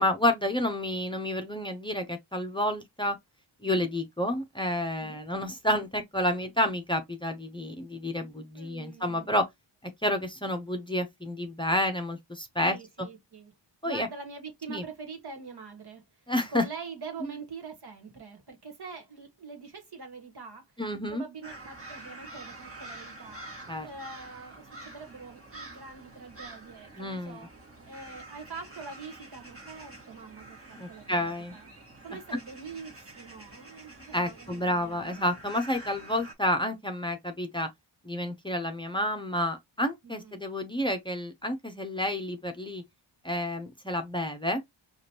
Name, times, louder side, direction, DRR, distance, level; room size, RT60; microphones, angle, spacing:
voice 1, 0.0-3.2 3.6-9.5 10.0-12.8 13.8-14.1 14.7-14.8 16.3-16.6 20.8-21.2 23.7-23.9 27.0-27.4 30.8-31.5 34.1-37.7 38.0-42.8 43.2-44.6, left 1 dB, 10° left, 0.8 m, -30 dB
voice 2, 8.5-9.4 12.6-13.5 13.8-16.2 16.5-20.7 21.1-23.4 23.8-27.5 27.8-31.7 32.0-35.2 40.0-40.4, right 4 dB, 55° right, 1.6 m, -44 dB
sound 1, 21.4-36.3, right 2 dB, 30° right, 1.6 m, -47 dB
5.0 x 2.6 x 2.9 m
cardioid pair, 80°, 46 cm